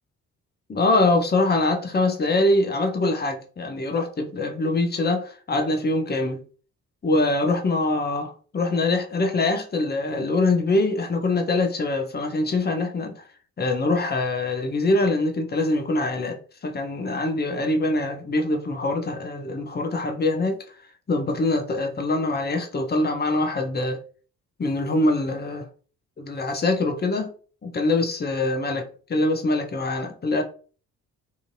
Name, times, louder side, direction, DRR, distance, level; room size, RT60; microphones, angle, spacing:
voice 1, 0.7-6.4 7.0-13.2 13.6-20.6 21.1-24.0 24.6-25.7 26.2-27.3 27.6-28.8 29.1-30.4, left 2 dB, 20° left, 0.7 m, -24 dB
2.6 x 2.6 x 2.6 m
figure-of-eight pair, 40°, 45 cm